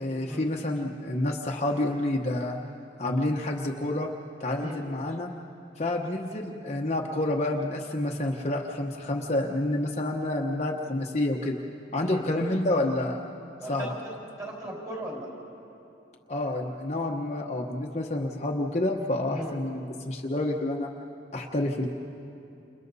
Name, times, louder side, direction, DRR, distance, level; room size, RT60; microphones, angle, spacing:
voice 1, 0.0-2.6 3.0-4.1 4.4-5.3 5.8-11.6 11.9-13.2 13.7-13.9 16.3-20.9 21.3-21.9, left 1 dB, 35° left, 0 dB, 1.1 m, -28 dB
voice 2, 13.6-15.3 19.3-19.5, right 1 dB, 20° right, -2 dB, 5.3 m, -37 dB
29.5 x 28.0 x 4.1 m, 2.7 s
head